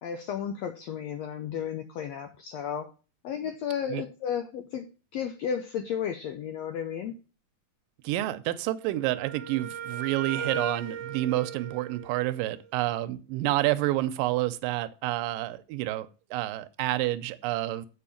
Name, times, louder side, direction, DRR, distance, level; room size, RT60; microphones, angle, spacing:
voice 1, 0.0-2.9 3.2-4.8 5.1-7.2, left 8 dB, 80° left, 8 dB, 1.5 m, -33 dB
voice 2, 8.0-17.9, right 16 dB, 80° right, 10 dB, 2.3 m, -29 dB
Wind instrument woodwind instrument, 8.8-12.7, right 7 dB, 65° right, 1.7 m, -37 dB
7.7 x 5.3 x 7.0 m, 0.35 s
omnidirectional pair, 4.0 m